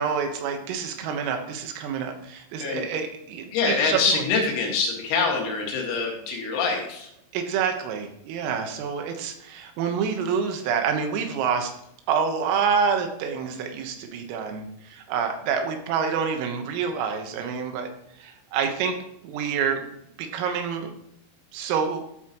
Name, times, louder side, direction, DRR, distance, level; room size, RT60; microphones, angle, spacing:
voice 1, 0.0-4.2 7.3-11.7 12.1-17.9 18.2-19.0 19.2-19.9 20.2-20.9 21.5-22.0, right 6 dB, 85° right, 5 dB, 3.9 m, -27 dB
voice 2, 3.5-7.1, left 4 dB, 85° left, 0 dB, 4.8 m, -25 dB
13.5 x 8.3 x 3.1 m, 0.74 s
omnidirectional pair, 5.9 m